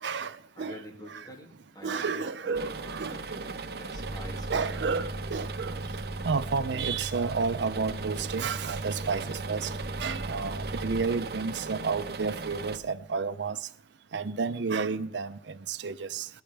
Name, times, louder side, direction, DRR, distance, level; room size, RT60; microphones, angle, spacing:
voice 1, 0.0-0.8 1.8-3.4 4.5-5.8 6.2-9.7 10.0-13.6 14.1-16.3, right 5 dB, 80° right, 0.6 m, -31 dB
voice 2, 0.6-5.1, equal, 20° left, 2.5 m, -47 dB
sound 1, 2.5-12.8, right 3 dB, 60° right, 0.9 m, -39 dB
sound 2, 3.9-11.0, right 2 dB, 45° left, 2.4 m, -38 dB
17.5 x 14.0 x 3.4 m
head